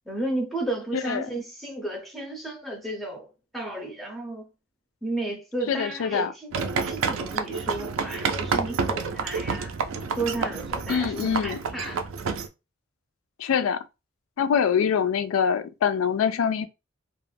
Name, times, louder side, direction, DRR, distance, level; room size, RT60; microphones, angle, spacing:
voice 1, 0.1-4.4 5.0-9.8 10.2-12.0, right 2 dB, ahead, 0.4 m, -33 dB
voice 2, 0.9-1.3 5.7-6.3 10.9-11.6 13.4-13.8 14.4-16.7, left 7 dB, 80° left, 0.3 m, -24 dB
sound 1, 6.5-12.5, right 5 dB, 75° right, 0.4 m, -29 dB
2.3 x 2.1 x 3.2 m
head